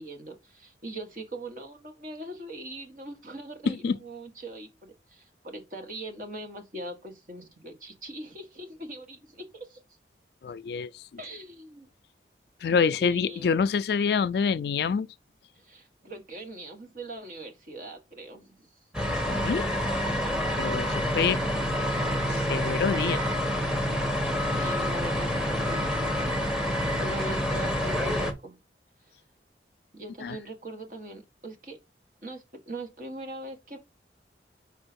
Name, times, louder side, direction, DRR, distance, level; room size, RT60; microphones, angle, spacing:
voice 1, 0.0-9.8 11.2-11.9 12.7-13.6 15.5-18.7 21.0-21.1 21.4-21.6 24.5-26.6 27.0-28.6 29.0-29.1 29.9-31.8 32.2-33.8, right 1 dB, 50° right, 1.6 m, -41 dB
voice 2, 3.7-4.0 10.4-11.0 12.6-15.1 19.3-19.7 20.6-21.4 22.3-23.2 30.2-30.4, left 6 dB, 65° left, 0.3 m, -26 dB
sound 1, 18.9-28.3, equal, 5° right, 1.0 m, -27 dB
4.9 x 4.4 x 5.1 m
head